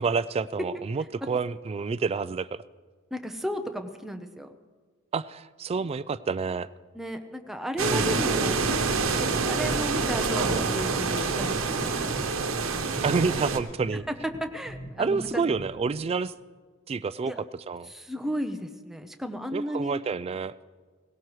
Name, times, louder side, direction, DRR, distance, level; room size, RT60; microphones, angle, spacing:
voice 1, 0.0-2.6 5.1-6.7 7.9-8.1 13.0-14.0 15.0-16.3 16.9-17.3 17.7-17.9 19.5-20.5, right 4 dB, 30° right, 16 dB, 0.3 m, -28 dB
voice 2, 3.1-4.5 6.9-8.6 9.0-12.2 14.4-15.4 17.2-17.4 17.8-20.0, equal, ahead, 6 dB, 0.7 m, -34 dB
sound 1, 7.8-13.6, right 4 dB, 90° right, 1.0 m, -26 dB
sound 2, 8.2-13.2, left 1 dB, 70° left, 4.6 m, -51 dB
sound 3, 9.4-16.1, equal, 20° left, 1.7 m, -45 dB
18.0 x 17.5 x 3.1 m, 1.5 s
head